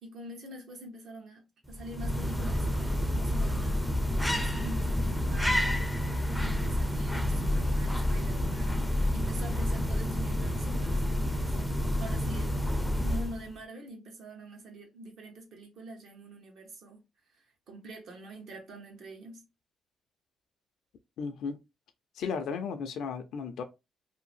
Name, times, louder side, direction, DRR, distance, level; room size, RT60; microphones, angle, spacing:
voice 1, 0.0-12.7 13.0-19.4, right 2 dB, 70° right, 1.0 m, -46 dB
sound 1, 1.7-13.5, left 1 dB, 5° left, 0.4 m, -29 dB
voice 2, 21.2-21.6 22.2-23.6, left 5 dB, 75° left, 0.4 m, -34 dB
2.7 x 2.0 x 3.2 m
cardioid pair, 90°, 0 cm